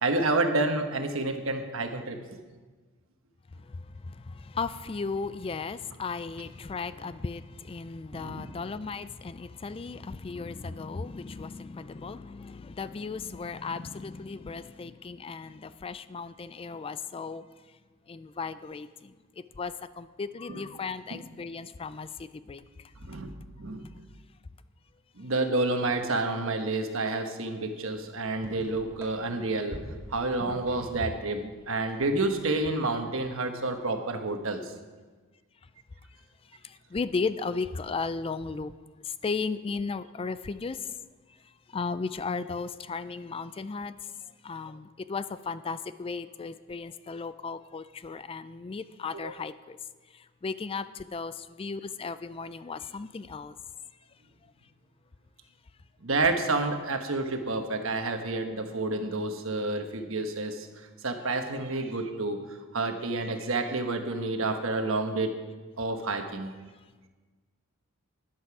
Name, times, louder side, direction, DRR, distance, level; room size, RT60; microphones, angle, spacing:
voice 1, 0.0-2.2 8.1-8.6 20.5-20.6 21.1-21.2 23.0-23.9 25.2-29.8 30.1-34.7 49.1-49.3 56.0-65.3 65.8-66.5, right 2 dB, 65° right, 5 dB, 1.2 m, -29 dB
voice 2, 4.1-17.4 18.1-19.1 19.6-22.6 36.6-38.7 39.0-40.9 41.7-43.9 44.4-49.8 50.4-53.5, left 4 dB, 25° left, 14 dB, 0.3 m, -35 dB
sound 1, 28.3-31.1 31.4-32.5 32.8-33.1, equal, 15° right, 2.0 m, -44 dB
12.5 x 10.5 x 4.8 m, 1.4 s
head